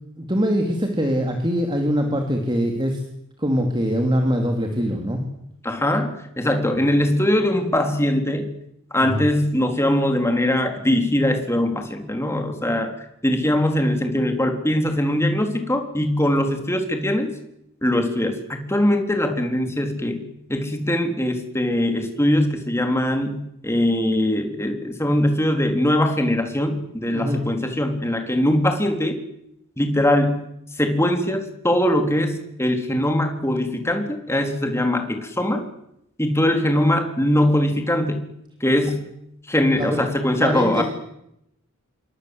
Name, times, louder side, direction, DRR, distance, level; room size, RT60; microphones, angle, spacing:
voice 1, 0.2-3.0 3.4-5.2 9.0-9.2 27.1-27.4 39.8-40.0 40.4-40.8, equal, 20° right, 3 dB, 3.1 m, -23 dB
voice 2, 5.6-8.5 8.9-12.9 13.2-17.3 17.8-29.2 29.8-30.5 30.8-35.6 36.2-38.2 38.6-39.1 39.5-40.8, left 1 dB, 10° left, 5 dB, 3.9 m, -21 dB
28.0 x 23.5 x 8.1 m, 0.79 s
head